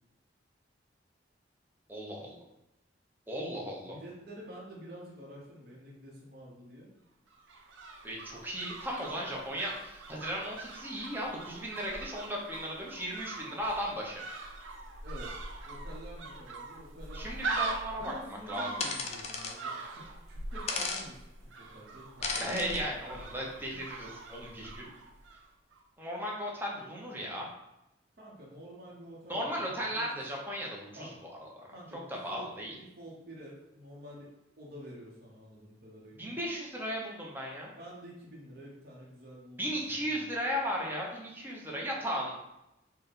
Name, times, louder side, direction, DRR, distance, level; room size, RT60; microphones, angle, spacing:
voice 1, 1.9-2.4 3.3-4.0 8.0-14.2 17.1-18.1 18.5-18.7 22.4-24.9 26.0-27.5 29.3-31.7 32.2-32.7 36.2-37.7 39.6-42.3, equal, 10° right, -3 dB, 0.6 m, -36 dB
voice 2, 3.5-6.9 15.0-15.3 15.7-17.4 18.0-23.5 28.2-30.2 30.9-31.1 31.7-36.4 37.8-39.7 40.1-40.4, equal, 55° right, -4 dB, 0.8 m, -49 dB
sound 1, 7.3-25.5 25.7-25.8, right 3 dB, 85° right, 0.5 m, -42 dB
sound 2, 18.8-19.6 20.7-21.1 22.2-22.8, left 4 dB, 35° left, 0.3 m, -34 dB
4.0 x 2.2 x 3.5 m, 0.91 s
head